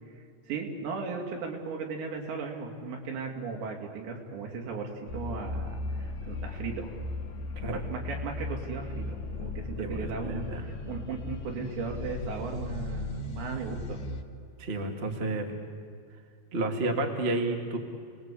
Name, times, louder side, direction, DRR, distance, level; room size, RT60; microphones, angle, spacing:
voice 1, 0.5-6.9 7.7-14.0, right 4 dB, 75° right, 1 dB, 5.0 m, -36 dB
sound 1, 5.1-14.2, left 2 dB, 70° left, 1.7 m, -37 dB
voice 2, 9.8-10.6 14.6-15.5 16.5-17.8, right 2 dB, 25° right, 2 dB, 1.4 m, -31 dB
30.0 x 20.0 x 8.5 m, 2.4 s
omnidirectional pair, 5.1 m